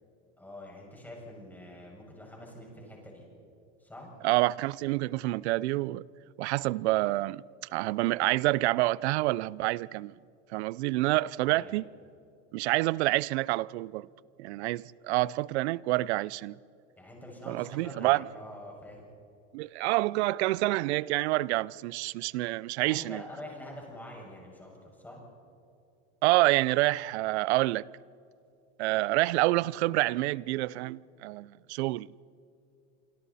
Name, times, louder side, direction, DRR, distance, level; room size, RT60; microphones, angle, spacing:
voice 1, 0.4-3.2 3.8-4.1 11.4-11.8 17.0-19.1 22.8-25.2, left 1 dB, 5° left, 6.4 m, -45 dB
voice 2, 4.2-6.1 6.4-7.4 7.7-10.1 10.5-11.9 12.5-14.1 14.4-16.6 17.5-18.2 19.5-23.2 26.2-27.9 28.8-32.2, right 19 dB, 80° right, 0.6 m, -27 dB
26.5 x 26.5 x 4.2 m
supercardioid pair, 145°, 33 cm